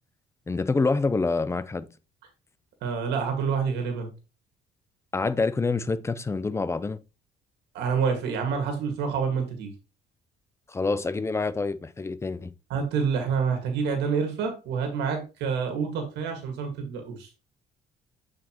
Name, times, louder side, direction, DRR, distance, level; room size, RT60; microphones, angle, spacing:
voice 1, 0.5-1.9 5.1-7.0 10.7-12.5, left 3 dB, 15° left, 0.5 m, -26 dB
voice 2, 2.8-4.1 7.7-9.7 12.7-17.3, right 6 dB, 80° right, 1.9 m, -27 dB
8.2 x 4.9 x 3.0 m
cardioid pair, 110°, 17 cm